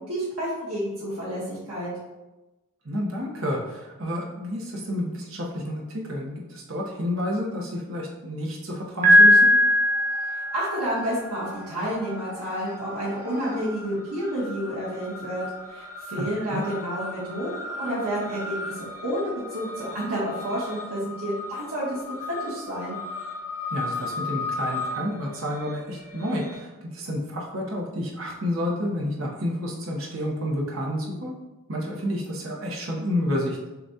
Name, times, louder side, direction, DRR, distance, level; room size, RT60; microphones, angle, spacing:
voice 1, 0.0-1.9 10.5-22.0 22.4-23.0, equal, 90° right, -9 dB, 1.3 m, -30 dB
voice 2, 2.8-9.5 16.1-16.6 23.7-31.3 31.7-33.7, left 1 dB, 65° right, -2 dB, 0.9 m, -30 dB
sound 1, 9.0-9.7 9.9-26.6, left 3 dB, 15° right, 1.1 m, -37 dB
Piano, 9.0-11.0, left 1 dB, 35° right, 0.8 m, -18 dB
6.7 x 2.4 x 2.7 m, 1.1 s
head